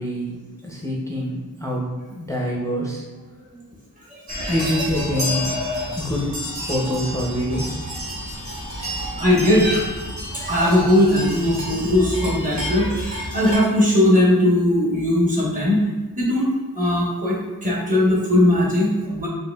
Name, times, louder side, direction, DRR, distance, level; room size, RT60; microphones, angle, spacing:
voice 1, 0.0-3.0 4.5-5.5 6.0-6.3 6.6-7.8, equal, 10° left, -3 dB, 0.5 m, -25 dB
sound 1, 4.3-13.6, equal, 45° right, 1.4 m, -30 dB
voice 2, 9.1-9.9 10.3-15.8 16.2-19.3, left 1 dB, 20° right, -6 dB, 1.1 m, -19 dB
4.6 x 2.5 x 2.3 m, 1.3 s
wide cardioid pair, 85°, 38 cm